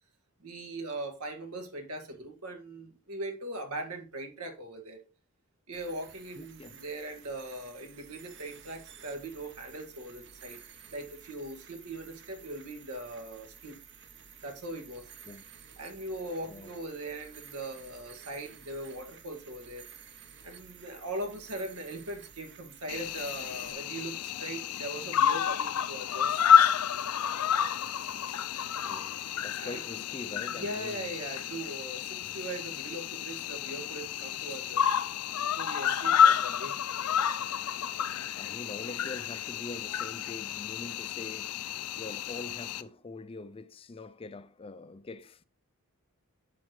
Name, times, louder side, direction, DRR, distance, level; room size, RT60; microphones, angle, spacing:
voice 1, 0.4-5.0 5.7-10.6 10.9-13.8 14.4-15.1 15.8-19.9 20.4-26.5 29.6-29.8 30.5-35.0 35.6-36.8, right 1 dB, 85° right, 2.2 m, -40 dB
sound 1, 5.7-23.7, right 7 dB, 55° right, 1.0 m, -52 dB
voice 2, 6.4-6.8 15.3-15.4 16.4-16.7 28.8-31.1 38.2-45.4, left 3 dB, 25° left, 0.4 m, -44 dB
Cricket, 22.9-42.8, left 8 dB, 80° left, 0.5 m, -29 dB
8.4 x 7.8 x 3.2 m
head